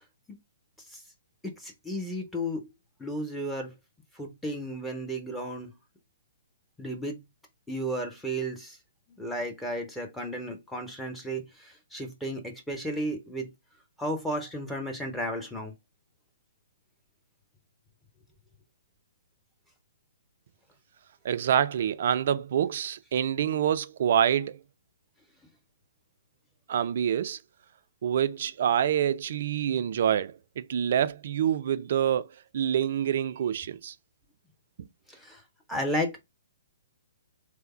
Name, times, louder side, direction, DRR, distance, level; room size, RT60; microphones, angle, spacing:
voice 1, 1.4-2.6 3.0-3.7 4.2-5.7 6.8-7.2 7.7-8.8 9.2-13.5 14.0-15.7 35.1-35.4 35.7-36.2, equal, 5° left, 0.8 m, -33 dB
voice 2, 21.2-24.6 26.7-27.4 28.0-32.3 32.5-33.9 34.8-34.9, right 9 dB, 50° right, 0.3 m, -26 dB
3.3 x 2.1 x 4.2 m
figure-of-eight pair, 125°, 0 cm